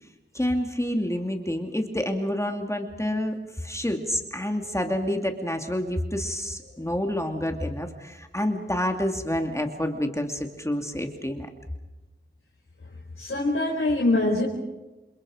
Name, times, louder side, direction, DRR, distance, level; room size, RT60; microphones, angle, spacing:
voice 1, 0.3-11.5, left 1 dB, 15° left, 4 dB, 2.6 m, -28 dB
voice 2, 13.2-14.4, left 2 dB, 90° left, -3 dB, 4.5 m, -23 dB
28.5 x 27.5 x 5.1 m, 1.1 s
wide cardioid pair, 40°, 21 cm